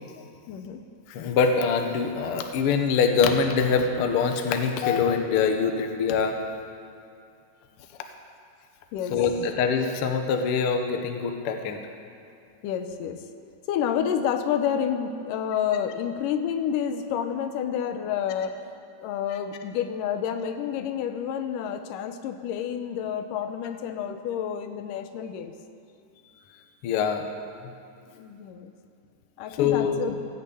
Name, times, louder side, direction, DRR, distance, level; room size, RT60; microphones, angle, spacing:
voice 1, 0.5-0.8 8.9-9.2 12.6-13.2 13.7-18.6 19.0-25.5 28.1-28.7 29.4-30.2, left 8 dB, 85° left, 8 dB, 2.3 m, -29 dB
voice 2, 1.1-6.4 9.1-11.8 26.8-27.2 29.6-30.0, left 6 dB, 65° left, 5 dB, 1.5 m, -24 dB
17.0 x 6.9 x 8.6 m, 2.5 s
omnidirectional pair, 3.7 m